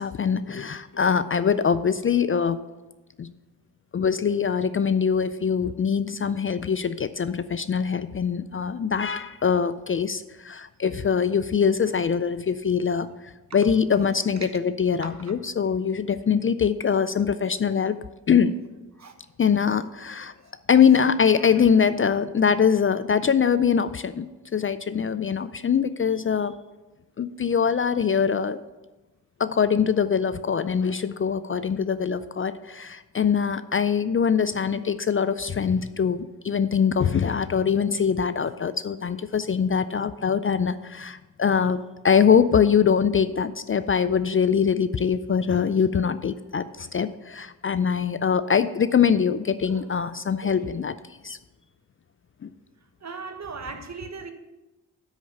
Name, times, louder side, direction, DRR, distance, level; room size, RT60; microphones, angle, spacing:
voice 1, 0.0-2.6 3.2-3.3 3.9-13.1 13.5-18.0 18.3-18.5 19.4-20.3 20.7-24.3 24.5-26.5 27.2-28.6 29.4-50.9 51.2-51.4 52.4-52.5, left 7 dB, 35° left, 0.4 m, -23 dB
voice 2, 50.4-50.7 53.0-54.3, right 4 dB, 45° right, 1.2 m, -38 dB
8.8 x 6.2 x 5.4 m
cardioid pair, 50°, 36 cm